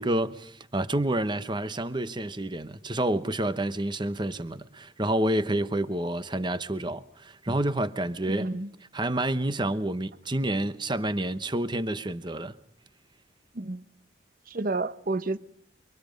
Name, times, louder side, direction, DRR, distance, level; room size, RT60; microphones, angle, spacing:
voice 1, 0.0-8.5 8.9-12.6, right 1 dB, 25° right, 1.0 m, -29 dB
voice 2, 8.3-8.7 13.5-13.9 14.5-15.4, right 2 dB, 45° right, 0.9 m, -30 dB
29.5 x 24.5 x 5.3 m
head